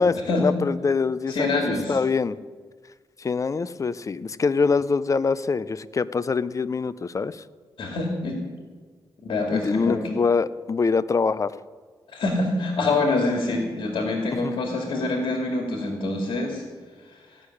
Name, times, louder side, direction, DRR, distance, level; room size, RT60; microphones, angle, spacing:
voice 1, 0.0-1.6 1.9-2.4 3.2-7.4 9.5-11.5 14.3-14.6, left 4 dB, 40° left, 16 dB, 0.5 m, -24 dB
voice 2, 1.3-2.0 7.8-8.4 9.2-10.0 12.1-16.6 17.1-17.4, left 2 dB, 75° left, 1 dB, 2.4 m, -26 dB
16.5 x 6.5 x 9.9 m, 1.5 s
cardioid pair, 85°, 8 cm